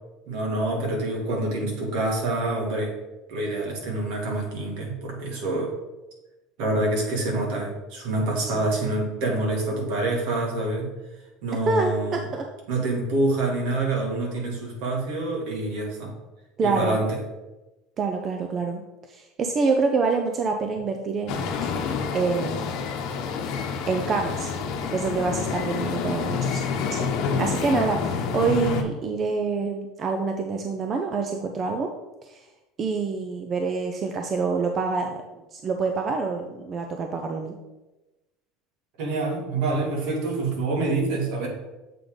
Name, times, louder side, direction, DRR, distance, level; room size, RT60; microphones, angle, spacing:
voice 1, 0.3-2.9 3.3-5.7 6.6-10.9 11.4-12.3 12.7-16.1 16.6-17.2 39.0-41.5, right 2 dB, 65° right, -1 dB, 2.4 m, -26 dB
voice 2, 11.7-12.5 16.6-17.0 18.0-18.8 19.1-21.5 22.1-22.7 23.9-24.5 24.9-26.6 26.9-27.1 27.4-31.9 32.2-32.5 32.8-37.5, right 4 dB, 30° right, 4 dB, 0.6 m, -26 dB
sound 1, 21.3-28.8, left 6 dB, 55° left, 1.0 m, -28 dB
7.5 x 3.7 x 5.2 m, 1.1 s
cardioid pair, 140°, 0 cm